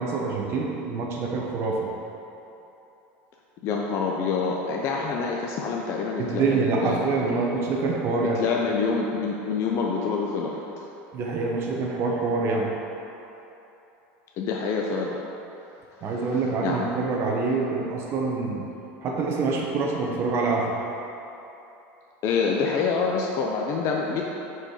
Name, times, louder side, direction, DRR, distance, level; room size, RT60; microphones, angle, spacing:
voice 1, 0.0-1.9 6.2-8.4 11.1-12.7 16.0-18.7 19.0-20.7, right 4 dB, 40° right, -1 dB, 1.1 m, -26 dB
voice 2, 3.6-7.4 8.3-10.8 14.4-15.2 16.6-16.9 22.2-24.2, left 5 dB, 45° left, -1 dB, 0.6 m, -26 dB
6.0 x 4.7 x 4.8 m, 3.0 s
supercardioid pair, 135°, 6 cm